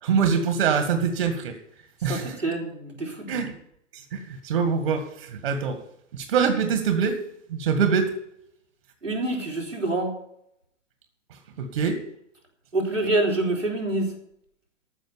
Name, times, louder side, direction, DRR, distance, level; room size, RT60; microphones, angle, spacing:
voice 1, 0.0-1.5 2.0-2.4 3.3-3.5 3.9-5.8 6.1-7.2 7.5-8.1 11.6-12.0, right 6 dB, 55° right, 6 dB, 2.1 m, -24 dB
voice 2, 2.1-3.4 9.0-10.1 12.7-14.1, right 2 dB, 90° right, -1 dB, 4.1 m, -26 dB
14.0 x 6.4 x 8.8 m, 0.73 s
figure-of-eight pair, 110°, 36 cm